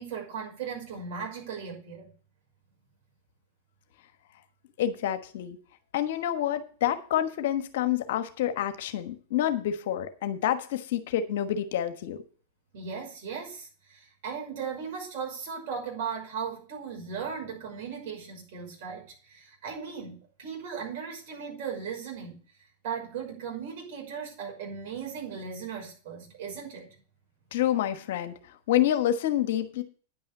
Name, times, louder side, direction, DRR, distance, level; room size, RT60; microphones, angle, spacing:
voice 1, 0.0-2.1 12.7-22.4 22.8-27.0, right 6 dB, 60° right, 5.9 m, -37 dB
voice 2, 4.8-5.6 5.9-12.2 27.5-28.3 28.7-29.8, left 11 dB, 65° left, 1.2 m, -28 dB
10.0 x 5.5 x 8.1 m
hypercardioid pair, 100°, 0 cm